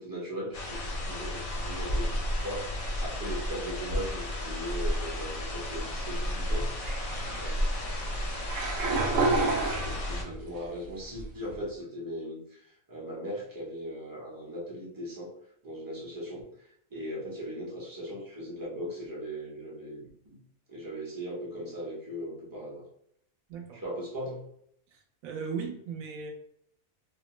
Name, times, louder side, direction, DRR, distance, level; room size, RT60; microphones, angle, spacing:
voice 1, 0.0-2.7 3.0-6.8 7.3-7.7 9.2-15.3 15.6-20.4 20.7-22.8 23.7-24.5, equal, 30° right, -4 dB, 0.4 m, -39 dB
sound 1, 0.5-10.2, left 1 dB, 75° left, 0.3 m, -32 dB
sound 2, 6.8-10.4 10.9-11.5, right 3 dB, 60° right, 0.7 m, -30 dB
voice 2, 23.5-23.8 24.9-26.3, right 5 dB, 90° right, 3 dB, 1.1 m, -37 dB
2.5 x 2.1 x 3.0 m, 0.70 s
omnidirectional pair, 1.4 m